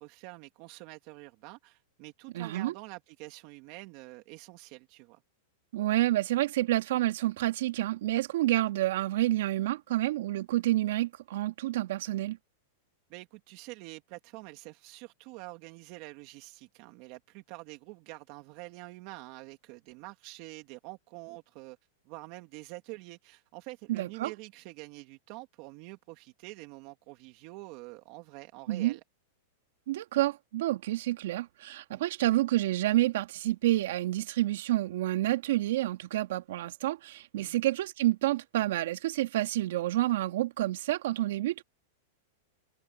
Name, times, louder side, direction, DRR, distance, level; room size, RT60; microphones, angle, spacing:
voice 1, 0.0-5.2 13.1-21.8 22.1-29.0 31.9-32.0 37.4-37.6, right 22 dB, 45° right, 2.3 m, -46 dB
voice 2, 2.3-2.7 5.7-12.4 23.9-24.3 28.7-29.0 29.9-41.6, right 15 dB, 70° right, 3.1 m, -29 dB
supercardioid pair, 140°, 0 cm